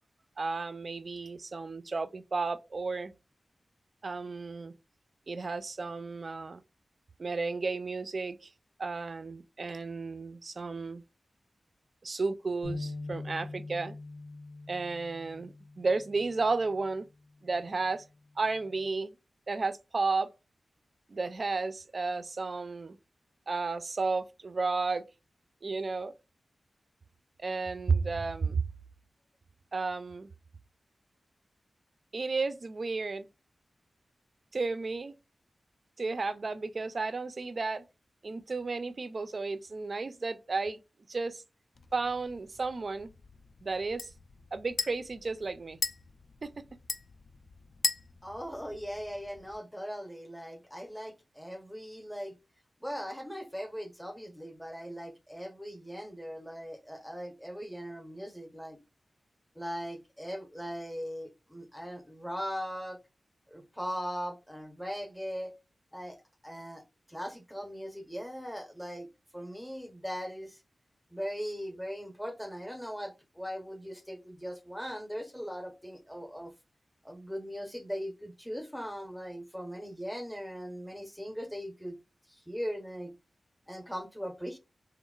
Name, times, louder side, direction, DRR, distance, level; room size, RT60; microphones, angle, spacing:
voice 1, 0.4-3.1 4.0-4.7 5.3-6.6 7.2-8.5 8.8-11.0 12.0-14.0 14.7-17.1 17.4-18.1 18.4-19.1 19.5-20.3 21.1-23.0 23.5-25.0 25.6-26.1 27.4-28.7 29.7-30.3 32.1-33.3 34.5-35.1 36.0-37.8 38.2-40.8 41.1-41.4 41.9-43.1 43.6-44.1 44.5-45.8 46.4-46.6, right 3 dB, 55° right, 0.3 m, -33 dB
sound 1, 12.6-16.9 17.4-17.6 18.4-18.9, left 2 dB, 90° left, 0.8 m, -43 dB
sound 2, 41.8-49.6, left 4 dB, 70° left, 0.3 m, -40 dB
voice 2, 48.2-52.4 52.8-58.8 59.6-63.0 63.5-65.5 65.9-66.2 66.4-66.8 67.1-69.1 69.3-70.6 71.1-76.5 77.0-82.0 82.3-83.1 83.7-84.6, equal, 5° left, 0.6 m, -39 dB
2.9 x 2.0 x 2.3 m
cardioid pair, 55°, 0 cm